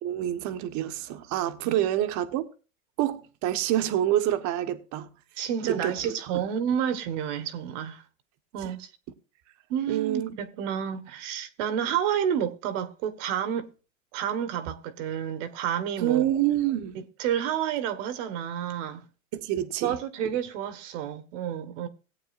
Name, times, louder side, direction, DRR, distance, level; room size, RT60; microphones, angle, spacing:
voice 1, 0.0-2.5 3.0-5.1 5.6-5.9 8.6-8.7 9.9-10.3 16.0-17.0 19.3-19.9, right 12 dB, 40° right, 1.2 m, -27 dB
voice 2, 5.4-8.0 8.5-8.9 9.7-13.7 14.1-16.3 16.9-19.1 19.8-21.9, right 9 dB, 60° right, 1.4 m, -30 dB
18.0 x 8.8 x 2.5 m
supercardioid pair, 125°, 43 cm